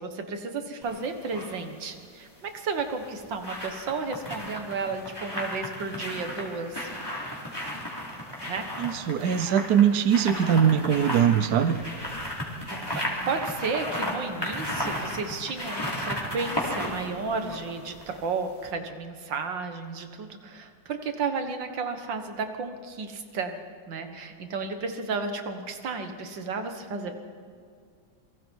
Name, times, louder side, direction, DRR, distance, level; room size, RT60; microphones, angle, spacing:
voice 1, 0.0-6.9 8.5-8.7 9.2-9.6 12.7-23.6 23.9-27.2, right 4 dB, 85° right, 6 dB, 2.2 m, -33 dB
sound 1, 0.8-1.6 2.8-18.3 18.6-18.7, equal, 10° left, 4.1 m, -34 dB
voice 2, 8.8-11.8, right 8 dB, 65° right, 10 dB, 1.3 m, -22 dB
28.0 x 23.5 x 4.7 m, 2.2 s
omnidirectional pair, 1.9 m